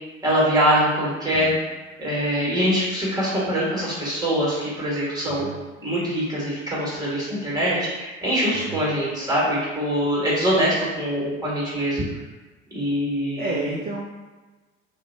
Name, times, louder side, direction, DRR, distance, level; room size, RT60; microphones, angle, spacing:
voice 1, 0.2-1.5 2.0-5.5 5.8-12.1 12.7-13.7, equal, 10° right, -7 dB, 1.4 m, -23 dB
voice 2, 8.5-8.9 13.4-14.1, right 2 dB, 25° right, -4 dB, 0.3 m, -31 dB
2.5 x 2.2 x 2.6 m, 1.2 s
hypercardioid pair, 65°, 38 cm